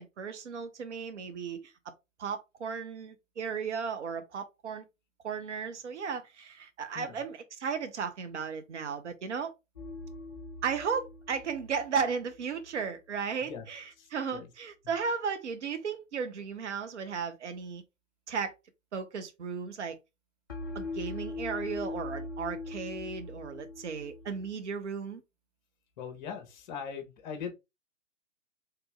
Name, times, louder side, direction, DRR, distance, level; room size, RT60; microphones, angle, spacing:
voice 1, 0.0-1.7 2.2-4.8 5.2-9.5 10.6-13.8 14.1-17.8 18.3-18.5 18.9-20.0 20.7-25.2, right 6 dB, 60° right, 0.9 m, -35 dB
sound 1, 9.8-12.8 20.5-24.5, left 2 dB, 20° left, 0.3 m, -41 dB
voice 2, 14.0-14.5 26.0-27.5, left 7 dB, 35° left, 1.0 m, -41 dB
3.4 x 2.9 x 3.2 m
figure-of-eight pair, 120°, 39 cm